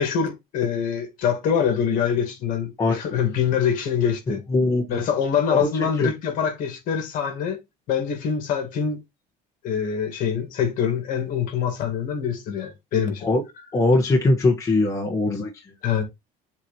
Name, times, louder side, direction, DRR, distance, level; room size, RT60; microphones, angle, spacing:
voice 1, 0.0-4.4 4.9-7.6 7.9-9.0 9.6-13.3 15.8-16.0, left 7 dB, 55° left, 2.4 m, -24 dB
voice 2, 4.5-5.0 5.5-6.1 13.2-13.4 13.7-15.5, left 2 dB, 20° left, 1.3 m, -21 dB
7.5 x 3.1 x 4.2 m
cardioid pair, 160°, 16 cm